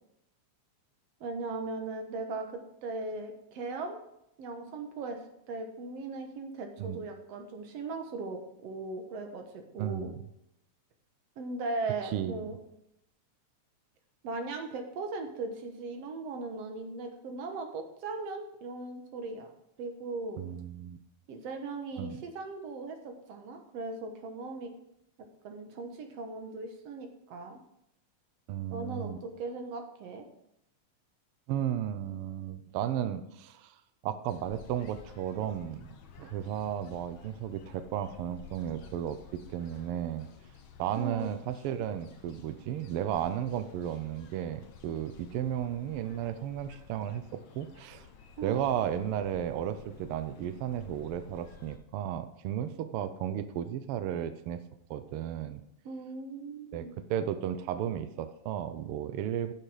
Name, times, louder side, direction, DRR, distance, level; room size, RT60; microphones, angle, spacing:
voice 1, 1.2-4.0 4.4-5.2 5.5-10.1 11.4-12.6 14.2-19.5 19.8-20.4 21.3-24.7 25.4-27.6 28.7-30.2 41.0-41.3 48.4-48.6 55.9-57.0, right 3 dB, 65° right, 5 dB, 2.2 m, -38 dB
voice 2, 9.8-10.2 12.1-12.4 20.4-21.0 22.0-22.2 28.5-29.2 31.5-33.7 34.0-40.3 40.8-48.1 48.4-54.6 54.9-55.6 56.7-59.5, right 10 dB, 90° right, 11 dB, 1.2 m, -34 dB
sound 1, 34.3-51.8, left 5 dB, 60° left, 1.3 m, -53 dB
9.7 x 7.6 x 4.9 m, 0.80 s
omnidirectional pair, 3.4 m